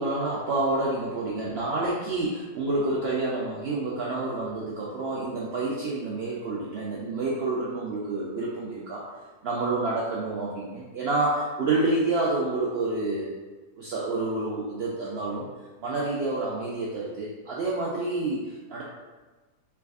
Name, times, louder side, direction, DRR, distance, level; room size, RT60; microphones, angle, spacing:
voice 1, 0.0-9.0 9.4-13.3 13.8-15.5 15.8-18.8, right 2 dB, 90° right, -5 dB, 0.5 m, -28 dB
3.3 x 3.3 x 2.3 m, 1.3 s
omnidirectional pair, 1.6 m